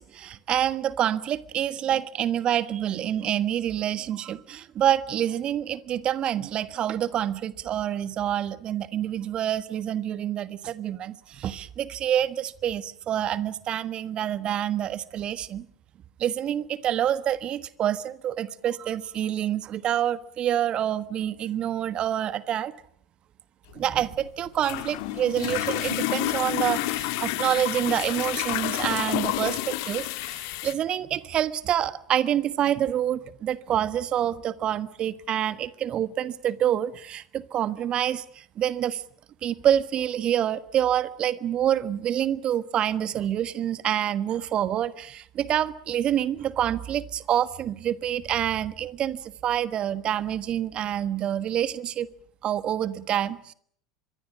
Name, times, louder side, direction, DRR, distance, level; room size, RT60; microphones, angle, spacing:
voice 1, 0.0-15.6 16.2-22.7 23.7-39.0 39.4-52.1 52.4-53.5, right 10 dB, 35° right, 15 dB, 1.4 m, -27 dB
sound 1, 23.7-30.7, left 16 dB, 55° left, 1.8 m, -29 dB
25.0 x 22.5 x 7.5 m, 0.62 s
figure-of-eight pair, 75°, 3 cm